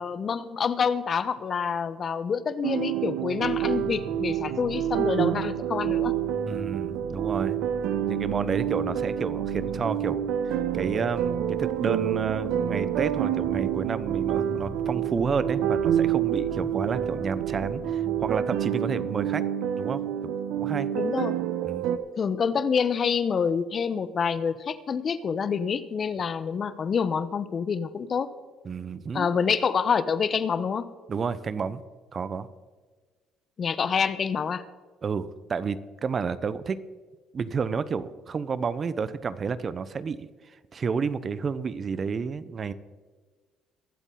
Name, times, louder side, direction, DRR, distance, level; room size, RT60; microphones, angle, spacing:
voice 1, 0.0-6.2 20.9-21.4 22.1-28.3 29.1-30.9 33.6-34.6, left 6 dB, 45° left, 14 dB, 0.9 m, -27 dB
sound 1, 2.6-22.0, right 10 dB, 75° right, 0.8 m, -28 dB
sound 2, 3.3-18.4, left 1 dB, 80° left, 4.2 m, -42 dB
voice 2, 6.5-7.6 8.1-10.2 10.4-19.4 19.8-20.9 21.6-21.9 28.6-29.3 31.1-31.8 32.1-32.5 35.0-36.8 37.3-40.3 40.7-42.7, right 5 dB, 40° right, 16 dB, 0.8 m, -30 dB
23.0 x 8.2 x 3.9 m, 1.4 s
supercardioid pair, 70°, 0 cm